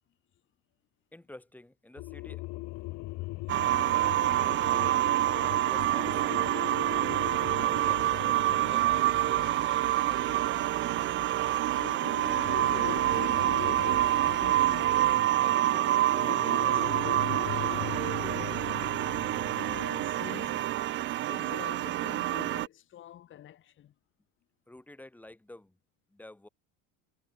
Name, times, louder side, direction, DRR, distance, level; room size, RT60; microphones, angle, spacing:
voice 1, 1.1-3.1 3.8-6.8 7.4-9.4 9.8-10.9 24.7-25.8 26.1-26.5, left 1 dB, 5° left, 7.8 m, -51 dB
sound 1, 2.0-11.1 11.7-20.5, left 20 dB, 50° left, 2.8 m, -41 dB
sound 2, 3.5-22.7, right 14 dB, 35° right, 0.9 m, -27 dB
sound 3, 7.8-8.3 8.7-12.0 12.2-15.1, left 23 dB, 90° left, 3.7 m, -50 dB
voice 2, 11.8-15.5 16.2-18.9 19.5-20.8 21.3-23.9, left 11 dB, 35° left, 4.9 m, -45 dB
cardioid pair, 160°, 36 cm